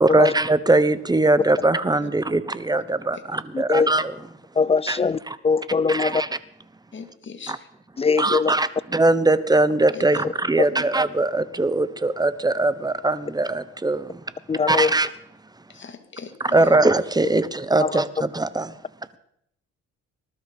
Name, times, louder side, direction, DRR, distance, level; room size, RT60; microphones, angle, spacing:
voice 1, 0.0-4.1 4.9-5.0 5.3-5.4 5.9-6.3 7.5-7.6 8.2-14.2 14.7-15.1 16.4-18.7, right 2 dB, 15° right, 1.0 m, -21 dB
voice 2, 2.0-2.3 3.1-3.2 6.9-7.7 9.9-10.3 10.7-10.8 15.7-16.8, left 5 dB, 40° left, 2.2 m, -40 dB
voice 3, 3.5-3.9 4.6-6.2 8.0-8.5 10.2-10.3 10.6-10.7 14.5-14.9 17.8-18.0, left 5 dB, 20° left, 0.5 m, -21 dB
20.0 x 12.5 x 5.4 m
cardioid pair, 90°, 30 cm